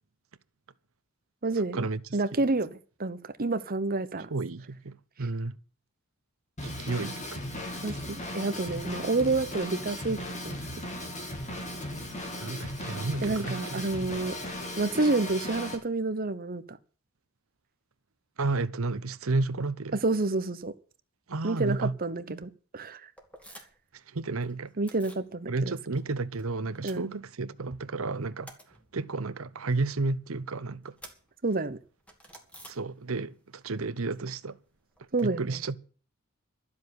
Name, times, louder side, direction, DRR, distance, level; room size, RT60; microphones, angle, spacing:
voice 1, 1.4-1.8 2.1-4.3 7.8-10.2 10.4-10.6 13.2-14.3 14.8-16.8 20.0-20.7 21.4-23.1 24.8-25.7 26.8-27.1 31.4-31.8 35.1-35.6, right 3 dB, 45° right, 1.1 m, -29 dB
voice 2, 4.3-5.5 6.6-7.4 12.4-13.8 18.4-20.0 21.3-21.9 22.3-22.4 24.1-24.7 25.5-28.5 28.9-30.9 32.7-34.6 35.2-35.8, right 3 dB, 80° right, 0.9 m, -32 dB
Drum kit / Drum, 6.6-15.8, left 1 dB, 35° left, 3.1 m, -37 dB
sound 1, 23.2-23.9 24.2-25.3 25.6-26.4 26.7-27.7 28.0-33.4 33.6-35.3, equal, 5° left, 2.5 m, -53 dB
12.5 x 7.4 x 9.6 m
head